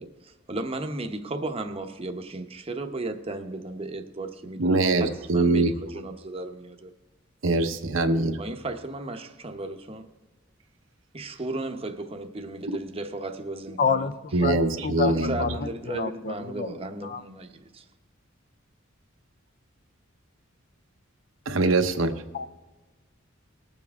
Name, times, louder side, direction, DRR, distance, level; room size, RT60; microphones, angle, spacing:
voice 1, 0.0-6.9 8.4-10.1 11.1-14.4 15.0-17.8, right 2 dB, 30° right, 0.8 m, -35 dB
voice 2, 4.6-5.7 7.4-8.4 14.3-15.4 21.5-22.1, right 2 dB, 70° right, 0.9 m, -23 dB
voice 3, 13.8-14.1 14.4-15.5 15.9-16.7 17.1-17.2 22.3-22.5, left 4 dB, 45° left, 0.5 m, -28 dB
20.0 x 7.2 x 3.5 m
head